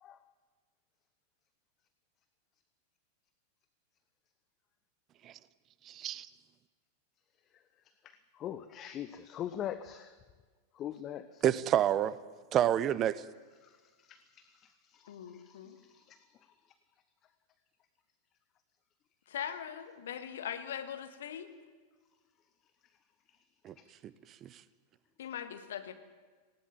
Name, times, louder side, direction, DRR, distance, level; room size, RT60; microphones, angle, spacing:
voice 1, 5.9-6.3 11.4-12.1 12.5-13.2 23.6-23.7 24.4-24.5, right 11 dB, 30° right, 17 dB, 0.9 m, -28 dB
voice 2, 8.0-10.1 10.7-11.4 13.6-16.5 23.8-23.9, left 10 dB, 30° left, 12 dB, 0.9 m, -43 dB
voice 3, 15.1-15.8 19.3-21.5 25.2-25.9, left 9 dB, 60° left, 9 dB, 1.7 m, -41 dB
18.5 x 17.5 x 9.1 m, 1.4 s
figure-of-eight pair, 90°, 0 cm